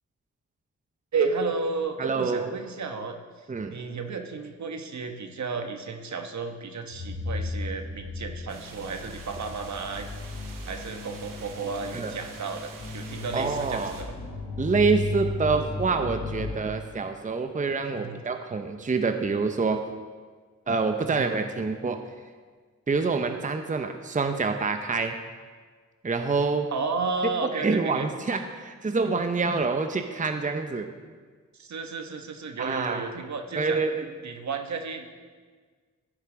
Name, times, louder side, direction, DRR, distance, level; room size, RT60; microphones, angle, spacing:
voice 1, 1.1-3.2 3.7-10.1 10.7-14.1 17.9-18.2 21.0-21.2 26.7-28.1 31.5-33.8 34.2-35.1, right 4 dB, 60° right, 5 dB, 1.1 m, -32 dB
voice 2, 2.0-2.5 3.5-3.8 11.9-12.1 13.3-13.9 14.6-19.8 20.7-22.0 22.9-25.2 26.0-26.7 27.2-30.9 32.6-33.1 33.6-34.0, right 4 dB, 25° right, 6 dB, 0.7 m, -26 dB
sound 1, 6.9-16.5, left 3 dB, 80° left, 2.1 m, -35 dB
sound 2, 8.5-14.0, right 4 dB, 85° right, 1.3 m, -46 dB
14.0 x 6.5 x 3.8 m, 1.5 s
cardioid pair, 55°, 32 cm